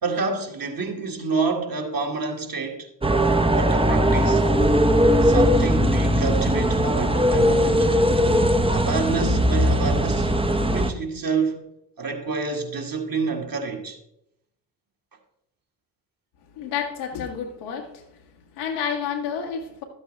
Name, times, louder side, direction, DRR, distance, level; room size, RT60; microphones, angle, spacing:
voice 1, 0.0-2.9 3.5-4.4 5.2-7.9 8.7-10.3 10.6-11.7 12.0-14.0, right 4 dB, 45° right, 2.0 m, -28 dB
sound 1, 3.0-10.9, equal, 10° right, 0.8 m, -19 dB
voice 2, 16.5-18.0 18.5-19.8, left 7 dB, 85° left, 1.6 m, -30 dB
12.0 x 8.3 x 3.3 m
hypercardioid pair, 50°, 50 cm